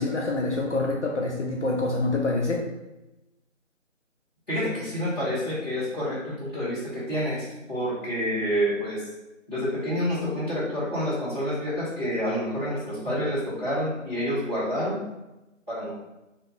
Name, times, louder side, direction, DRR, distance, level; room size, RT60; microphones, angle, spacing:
voice 1, 0.0-2.6, left 2 dB, 60° left, -1 dB, 0.5 m, -26 dB
voice 2, 4.5-9.0 9.5-15.0 15.7-15.9, equal, 10° left, -14 dB, 1.0 m, -28 dB
2.5 x 2.2 x 3.0 m, 0.98 s
figure-of-eight pair, 165°, 39 cm